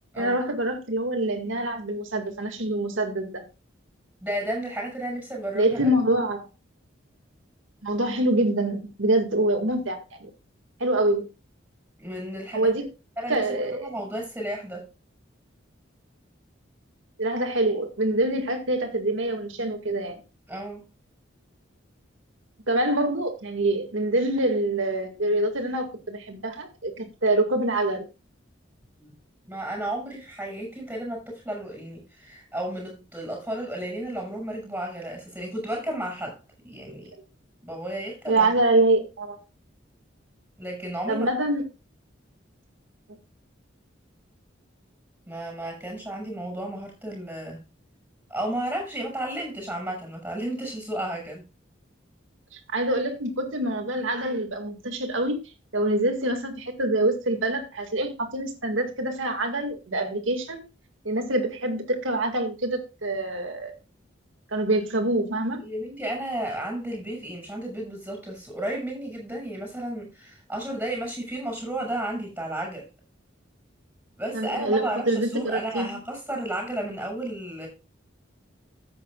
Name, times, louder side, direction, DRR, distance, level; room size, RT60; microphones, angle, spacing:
voice 1, 0.2-3.4 5.5-6.4 7.8-10.3 10.8-11.3 12.5-12.8 13.3-13.9 17.2-20.2 22.7-28.1 36.9-37.0 38.3-39.4 41.1-41.6 52.5-55.4 55.7-60.6 61.0-63.7 64.5-65.6 74.3-75.9, right 1 dB, 85° right, 2.0 m, -25 dB
voice 2, 4.2-5.9 12.0-12.7 13.2-14.9 20.5-20.9 29.0-29.1 29.4-36.4 36.6-37.1 37.6-38.5 40.6-41.3 45.3-47.6 48.3-51.5 65.6-72.9 74.2-77.7, right 1 dB, 10° right, 6.3 m, -33 dB
14.0 x 8.6 x 2.4 m
head